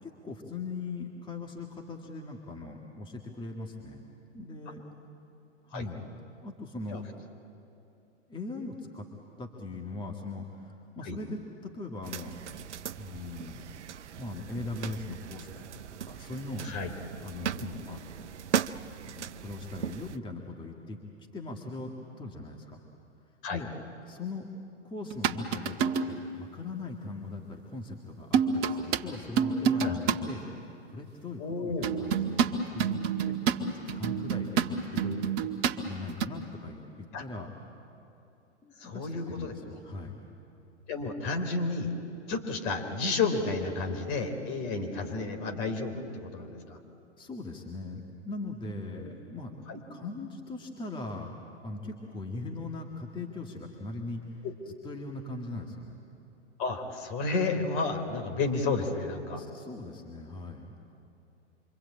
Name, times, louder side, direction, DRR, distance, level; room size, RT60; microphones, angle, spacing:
voice 1, 0.0-4.0 4.3-4.8 5.6-6.0 6.4-7.0 8.3-9.1 9.4-12.4 13.0-13.6 13.9-16.7 17.2-18.0 19.1-21.0 21.3-22.8 23.5-23.7 24.1-24.5 24.8-30.4 30.9-32.9 33.3-35.5 35.8-37.5 38.6-40.2 47.2-49.5 49.9-51.3 51.6-54.2 54.8-56.0 59.4-60.7, left 3 dB, 15° left, 1 dB, 2.2 m, -40 dB
sound 1, 12.0-20.2, right 8 dB, 75° right, 0.8 m, -38 dB
sound 2, 25.1-26.2 28.3-29.0 29.4-30.2 31.8-35.8 36.1-36.3, right 7 dB, 40° right, 1.7 m, -27 dB
voice 2, 31.4-31.9 37.1-37.2 38.8-39.5 40.9-41.9 42.3-46.8 48.9-49.1 49.7-49.8 54.4-54.5 56.6-59.4, left 3 dB, 45° left, 6 dB, 3.8 m, -31 dB
27.0 x 25.0 x 8.8 m, 2.7 s
figure-of-eight pair, 110°, 35 cm